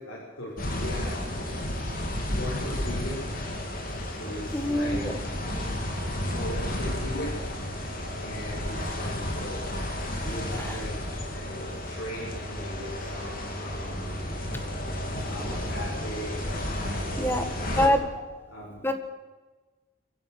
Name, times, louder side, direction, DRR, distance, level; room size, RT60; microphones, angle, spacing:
voice 1, 0.0-1.8 2.3-3.2 4.2-5.0 5.4-5.7 6.3-7.6 8.1-9.7 10.1-11.0 11.3-14.3 15.3-18.2 18.5-18.8, left 1 dB, 70° left, -6 dB, 7.0 m, -39 dB
sound 1, 0.6-17.9, left 1 dB, 45° left, 3.4 m, -32 dB
voice 2, 4.5-5.1 10.5-10.8 17.2-17.5 17.8-18.0 18.8-18.9, left 1 dB, 10° left, 7 dB, 1.8 m, -25 dB
24.0 x 15.5 x 6.9 m, 1.3 s
head